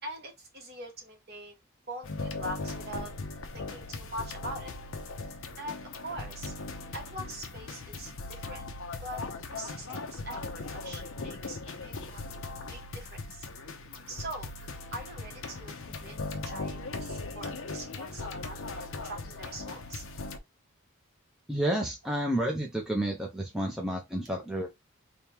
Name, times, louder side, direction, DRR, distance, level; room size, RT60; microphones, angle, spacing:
voice 1, 0.0-1.6 1.9-3.1 3.5-4.7 5.6-6.5 6.9-8.7 9.0-9.2 9.5-12.4 12.7-13.5 14.1-16.2 16.4-20.0, right 1 dB, 45° right, 1.4 m, -43 dB
sound 1, 2.0-20.4, left 3 dB, 65° left, 0.7 m, -39 dB
voice 2, 21.5-24.7, right 1 dB, ahead, 0.6 m, -30 dB
3.5 x 2.3 x 4.4 m
head